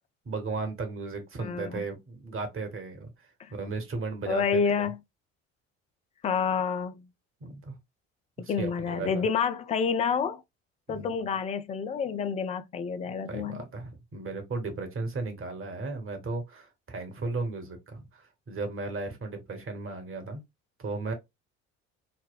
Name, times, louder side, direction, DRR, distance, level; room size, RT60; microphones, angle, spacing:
voice 1, 0.3-3.1 3.5-4.9 7.4-7.8 8.4-9.3 10.9-11.1 13.3-20.4 20.8-21.1, right 3 dB, 35° right, 1.1 m, -35 dB
voice 2, 1.4-1.8 3.4-3.5 4.3-5.0 6.2-7.1 8.4-10.4 10.9-13.6, left 6 dB, 20° left, 0.3 m, -29 dB
4.1 x 2.1 x 2.3 m
figure-of-eight pair, 55°, 39 cm